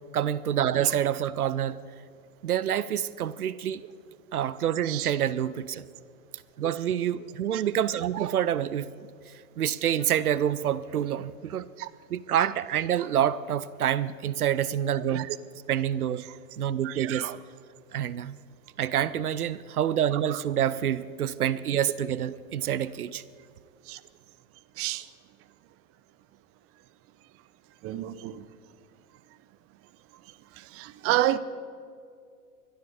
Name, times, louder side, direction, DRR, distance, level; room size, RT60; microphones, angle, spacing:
voice 1, 0.1-1.8 2.4-3.8 4.3-5.9 6.6-8.9 9.3-11.7 12.1-15.3 15.7-16.3 16.6-17.3 17.9-18.4 18.8-23.2, right 10 dB, 85° right, 0.6 m, -27 dB
voice 2, 16.8-17.4 23.9-24.0 24.8-25.0 27.8-28.4 30.7-31.4, right 14 dB, 30° right, 0.7 m, -29 dB
21.0 x 12.5 x 5.2 m
figure-of-eight pair, 90°, 44 cm